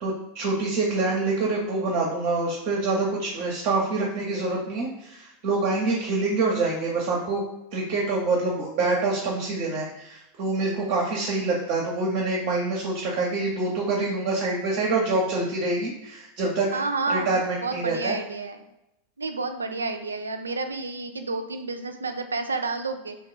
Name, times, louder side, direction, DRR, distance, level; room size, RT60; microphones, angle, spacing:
voice 1, 0.0-7.4 7.7-16.7 17.1-18.2, right 3 dB, 50° right, -3 dB, 0.6 m, -26 dB
voice 2, 16.7-17.4 17.6-18.6 19.2-23.2, right 3 dB, 80° right, 7 dB, 0.3 m, -30 dB
2.6 x 2.3 x 3.7 m, 0.88 s
figure-of-eight pair, 85°, 0 cm